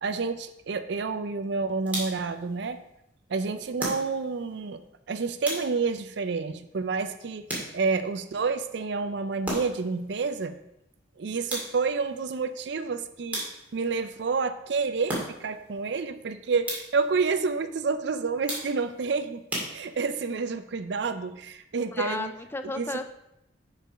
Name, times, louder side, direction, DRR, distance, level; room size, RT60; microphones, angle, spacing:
voice 1, 0.0-2.8 3.3-4.8 5.1-7.5 7.7-10.5 11.2-13.5 13.7-19.4 19.7-22.3 22.7-22.9, right 4 dB, 65° right, 11 dB, 0.5 m, -29 dB
sound 1, 1.9-2.4 3.8-4.4 5.4-6.0 7.5-8.1 9.4-10.0 11.5-12.0 13.3-13.9 15.1-15.6 16.6-17.1 18.5-19.0 19.5-20.2, right 1 dB, 10° right, 2.0 m, -35 dB
voice 2, 21.9-23.0, left 2 dB, 10° left, 8 dB, 0.3 m, -33 dB
6.9 x 4.8 x 4.9 m, 0.84 s
head